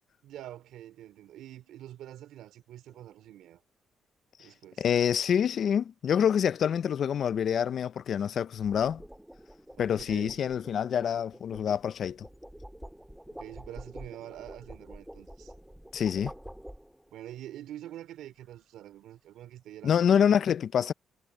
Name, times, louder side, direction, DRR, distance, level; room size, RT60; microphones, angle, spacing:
voice 1, 0.2-3.6 4.4-4.9 9.7-10.4 13.3-15.5 17.1-20.5, right 12 dB, 85° right, 4.1 m, -46 dB
sound 1, 2.9-3.2 8.3-17.2, equal, 5° right, 2.9 m, -48 dB
voice 2, 4.8-9.0 9.8-12.3 15.9-16.3 19.8-20.9, left 8 dB, 60° left, 0.5 m, -26 dB
cardioid pair, 90°, 0 cm